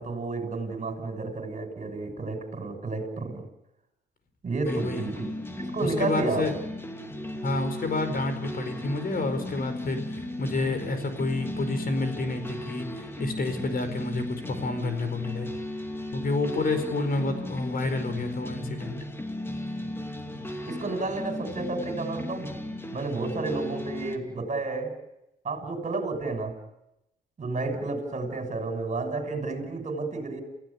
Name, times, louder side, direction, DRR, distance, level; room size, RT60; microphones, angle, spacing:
voice 1, 0.0-3.4 4.4-5.3 5.7-6.5 20.7-22.5 22.9-25.0 25.4-26.6 27.4-30.4, right 3 dB, 35° right, 5 dB, 6.5 m, -31 dB
voice 2, 4.6-5.1 5.8-6.5 7.4-15.5 16.1-19.0 19.8-19.9, left 2 dB, 50° left, 9 dB, 4.9 m, -29 dB
sound 1, 4.6-24.2, left 1 dB, 10° left, 2.6 m, -36 dB
29.0 x 16.0 x 8.5 m, 0.87 s
cardioid pair, 90°, 20 cm